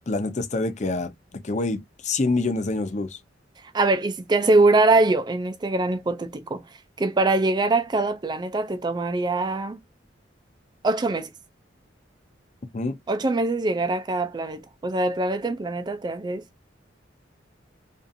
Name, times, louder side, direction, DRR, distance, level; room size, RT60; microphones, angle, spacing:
voice 1, 0.1-1.1 1.4-3.2 12.7-13.0, left 3 dB, 40° left, 0.5 m, -26 dB
voice 2, 3.7-6.6 7.0-9.8 10.8-11.3 13.1-16.4, right 2 dB, 25° right, 0.4 m, -23 dB
2.5 x 2.4 x 2.5 m
head